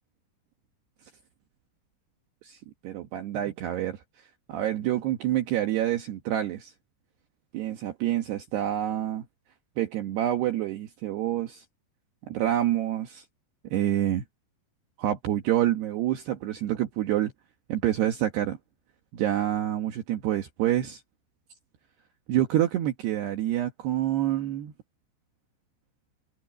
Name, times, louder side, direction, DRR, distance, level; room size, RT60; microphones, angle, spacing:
voice 1, 2.4-4.0 4.5-6.7 7.5-9.2 9.8-11.6 12.3-13.2 13.7-14.2 15.0-17.3 17.7-18.6 19.1-21.0 22.3-24.7, right 12 dB, 65° right, 3.3 m, -27 dB
omnidirectional pair, 5.5 m